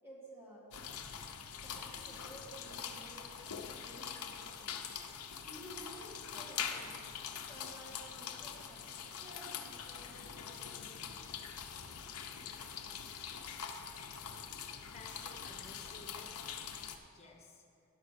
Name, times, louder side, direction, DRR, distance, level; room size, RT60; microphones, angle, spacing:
voice 1, 0.0-0.7 1.6-4.8 5.4-11.3 11.8-11.9, right 1 dB, 10° right, -6 dB, 2.3 m, -54 dB
sound 1, 0.7-17.0, left 7 dB, 85° left, 0.7 m, -44 dB
voice 2, 14.9-16.7 17.1-17.6, left 3 dB, 30° left, 1 dB, 1.2 m, -55 dB
11.0 x 5.5 x 6.7 m, 2.4 s
head